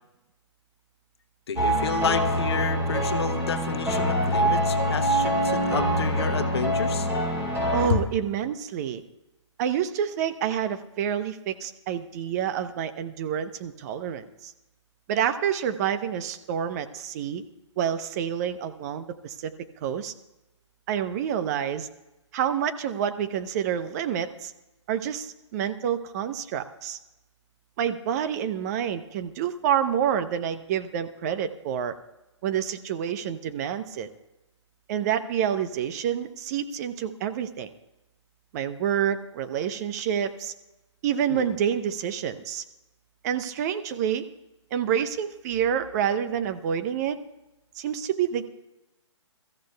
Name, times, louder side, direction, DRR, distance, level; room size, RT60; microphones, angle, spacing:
voice 1, 1.5-7.1 7.9-8.0 41.3-41.5, left 7 dB, 60° left, 10 dB, 1.0 m, -30 dB
sound 1, 1.6-7.9, equal, 15° right, 4.4 m, -25 dB
voice 2, 7.7-9.0 9.6-14.5 15.1-17.4 17.8-19.5 19.8-20.1 20.9-21.9 22.3-24.5 24.9-27.0 27.8-31.9 32.4-34.1 34.9-37.7 38.5-40.5 41.0-42.6 43.2-44.2 44.7-47.2 47.8-48.5, right 9 dB, 35° right, 10 dB, 0.8 m, -28 dB
23.0 x 14.0 x 2.3 m, 0.97 s
figure-of-eight pair, 125°, 15 cm